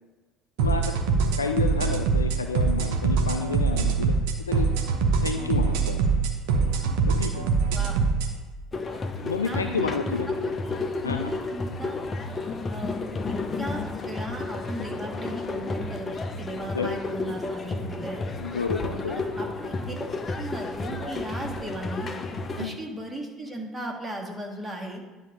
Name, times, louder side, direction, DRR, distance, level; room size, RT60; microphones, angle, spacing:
voice 1, 0.6-1.0 1.4-4.7 5.2-6.1 6.9-7.5 9.2-10.3 11.0-11.3 16.7-17.0 18.4-19.4 22.6-22.8, left 5 dB, 85° left, 6 dB, 0.3 m, -30 dB
sound 1, 0.6-8.3, right 5 dB, 65° right, 0.9 m, -24 dB
sound 2, 8.7-22.7, left 3 dB, 30° left, 0.8 m, -32 dB
voice 2, 9.4-12.0 12.7-13.0 13.6-18.2 19.1-19.9 20.4-22.1 22.6-25.0, right 1 dB, 15° right, 0 dB, 1.8 m, -37 dB
9.9 x 3.4 x 6.8 m, 1.2 s
figure-of-eight pair, 60°, 0 cm